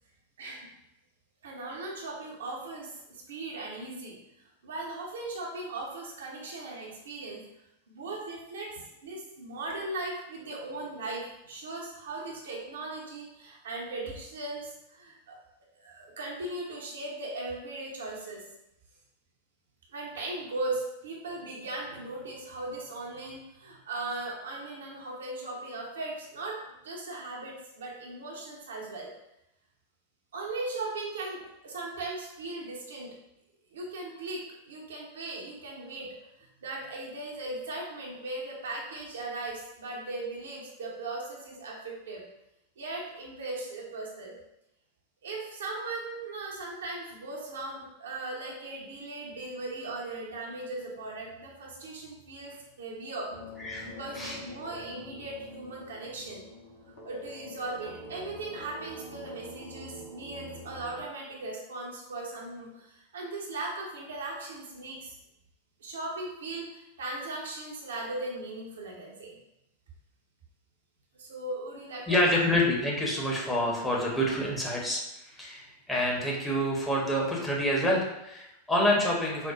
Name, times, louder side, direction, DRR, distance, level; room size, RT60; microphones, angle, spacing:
voice 1, 1.4-4.2 4.6-7.4 7.9-15.4 15.8-18.4 19.9-26.6 26.8-29.1 30.3-33.1 33.7-36.1 36.4-42.2 42.8-44.3 45.2-53.3 53.8-56.4 57.0-65.2 65.8-69.4 71.2-72.3, right 2 dB, 65° right, -2 dB, 0.7 m, -38 dB
sound 1, 53.3-61.0, left 1 dB, 55° left, 0.9 m, -46 dB
voice 2, 53.6-53.9 54.1-54.4 72.1-75.0 75.3-79.5, left 1 dB, 5° left, -4 dB, 0.8 m, -27 dB
4.3 x 2.1 x 2.4 m, 0.86 s
figure-of-eight pair, 90°, 0 cm